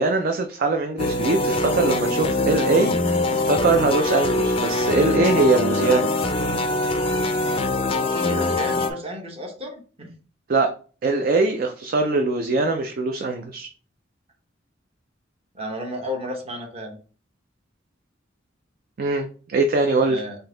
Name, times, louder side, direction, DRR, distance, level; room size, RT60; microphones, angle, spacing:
voice 1, 0.0-6.1 10.5-10.7 11.0-13.7 19.0-20.2, right 3 dB, 50° right, 5 dB, 0.4 m, -22 dB
sound 1, 1.0-8.9, left 2 dB, 30° left, 0.4 m, -23 dB
voice 2, 7.9-10.1 15.5-17.0 20.0-20.4, left 1 dB, 30° right, 2 dB, 0.9 m, -32 dB
3.8 x 2.8 x 3.7 m, 0.39 s
head